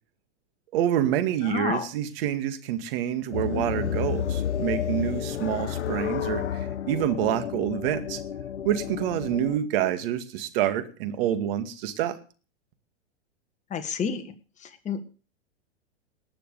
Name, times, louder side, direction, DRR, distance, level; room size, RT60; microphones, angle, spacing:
voice 1, 0.7-8.2 8.6-12.2, right 10 dB, 55° right, 9 dB, 2.2 m, -27 dB
voice 2, 1.4-1.9 13.7-14.2 14.6-15.1, left 6 dB, 20° left, 6 dB, 1.6 m, -30 dB
sound 1, 3.3-9.6, left 9 dB, 90° left, 1.1 m, -31 dB
19.5 x 6.9 x 6.8 m, 0.38 s
hypercardioid pair, 115°, 33 cm